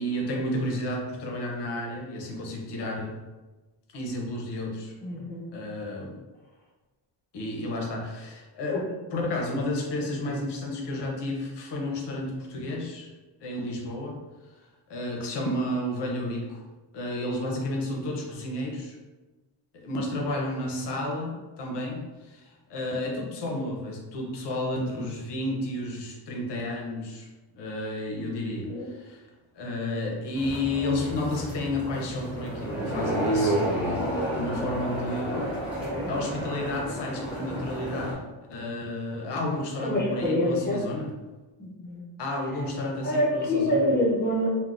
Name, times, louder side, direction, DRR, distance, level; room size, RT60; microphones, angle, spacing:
voice 1, 0.0-3.2 3.9-4.9 5.5-6.1 7.3-8.8 9.1-13.1 13.4-14.2 14.9-16.6 16.9-19.0 19.7-27.3 27.5-29.2 29.5-35.5 36.1-38.2 38.5-41.1 42.2-43.9, left 1 dB, 60° left, 0 dB, 0.7 m, -31 dB
voice 2, 5.0-5.5 8.7-8.8 28.6-28.9 35.3-35.4 35.8-36.1 39.8-40.8 41.6-42.0 43.0-44.5, left 1 dB, 20° left, -4 dB, 0.7 m, -26 dB
sound 1, 30.3-38.1, right 1 dB, ahead, 1.1 m, -31 dB
3.6 x 2.2 x 2.4 m, 1.2 s
cardioid pair, 155°, 46 cm